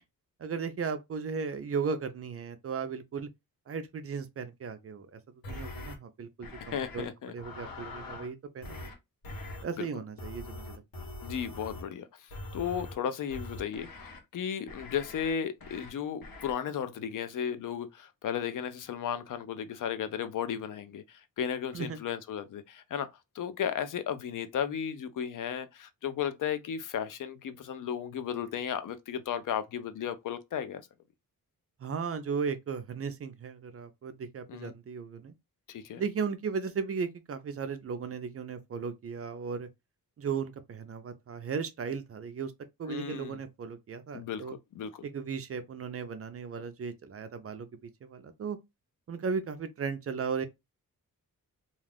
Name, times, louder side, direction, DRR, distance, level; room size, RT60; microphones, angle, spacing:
voice 1, 0.4-3.3 3.7-5.2 5.5-7.1 7.3-8.9 9.6-11.1 21.7-22.0 31.8-35.3 36.0-39.7 40.2-42.5 42.8-44.6 45.0-48.6 49.1-50.5, right 5 dB, 45° right, 0.4 m, -36 dB
sound 1, 5.4-6.0 6.4-7.1 7.4-8.3 8.6-8.9 9.2-9.6 10.2-11.9 12.3-12.9 13.3-14.2 14.7-15.3 15.6-15.9 16.2-16.5, left 2 dB, 80° left, 0.9 m, -43 dB
voice 2, 6.6-7.3 9.8-9.9 11.2-23.1 23.3-30.8 34.5-34.7 35.7-36.0 42.9-43.4 44.1-45.0, left 8 dB, 65° left, 0.4 m, -35 dB
2.4 x 2.3 x 3.3 m
wide cardioid pair, 155°, 35 cm